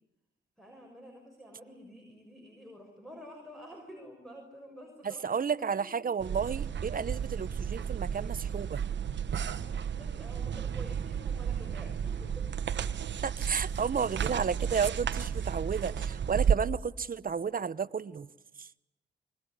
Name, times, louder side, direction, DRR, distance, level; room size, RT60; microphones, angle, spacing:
voice 1, 0.6-6.1 9.4-12.5, equal, ahead, 6.6 m, -50 dB
voice 2, 5.0-8.8 13.2-18.3 18.6-18.7, right 6 dB, 50° right, 1.0 m, -32 dB
sound 1, 6.2-16.6, right 8 dB, 70° right, 1.2 m, -33 dB
25.5 x 22.5 x 9.8 m
cardioid pair, 60°, 19 cm